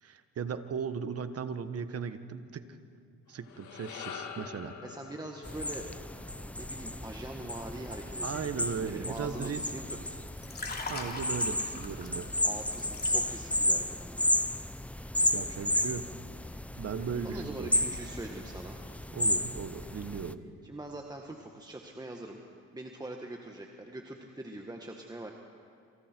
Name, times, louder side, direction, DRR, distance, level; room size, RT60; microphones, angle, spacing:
voice 1, 0.0-2.7 3.3-4.7 8.2-9.6 10.9-12.3 15.3-16.0 16.8-17.7 19.1-20.5, right 6 dB, 50° right, 10 dB, 1.4 m, -37 dB
sound 1, 3.3-7.8, left 7 dB, 75° left, 2.5 m, -46 dB
voice 2, 4.8-6.0 6.6-10.2 12.4-14.3 17.2-18.8 20.6-22.4 22.7-25.3, right 1 dB, 15° right, 2 dB, 1.7 m, -43 dB
sound 2, 5.4-20.3, left 1 dB, 5° left, 0.6 m, -33 dB
Liquid, 10.2-13.6 13.9-14.2, left 3 dB, 30° left, 3.4 m, -41 dB
28.0 x 26.5 x 4.6 m, 2.4 s
cardioid pair, 90°, 30 cm